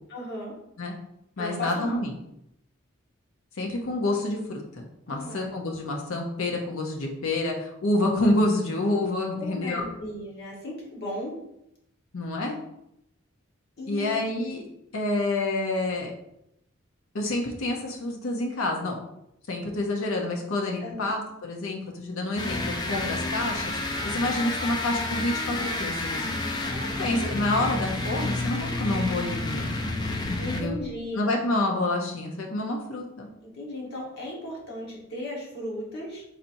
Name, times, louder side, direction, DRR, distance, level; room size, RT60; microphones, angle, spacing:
voice 1, 0.1-0.5 1.4-2.0 5.1-5.7 9.4-11.4 13.8-14.3 20.8-21.1 26.1-26.6 30.4-31.4 33.4-36.2, left 1 dB, 55° left, -4 dB, 1.4 m, -36 dB
voice 2, 1.4-2.1 3.6-9.8 12.1-12.6 13.9-14.6 14.9-16.1 17.1-19.0 19.5-23.8 24.0-26.2 26.7-29.7 30.3-30.7 31.1-33.3, left 2 dB, 80° left, 0 dB, 0.7 m, -28 dB
sound 1, 22.4-30.9, left 2 dB, 20° left, 0.4 m, -30 dB
4.3 x 4.1 x 2.6 m, 0.81 s
head